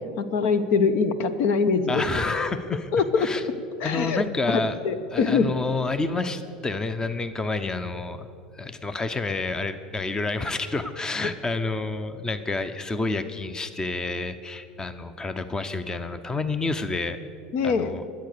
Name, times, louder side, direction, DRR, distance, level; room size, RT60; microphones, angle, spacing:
voice 1, 0.2-2.0 2.9-3.3 3.8-5.5 17.5-18.0, left 5 dB, 60° left, 12 dB, 1.0 m, -23 dB
voice 2, 1.9-2.9 3.2-3.4 3.8-4.8 5.1-8.3 8.5-17.2 17.6-18.0, left 3 dB, 15° left, 11 dB, 0.8 m, -29 dB
22.5 x 8.5 x 6.7 m, 2.5 s
hypercardioid pair, 90°, 4 cm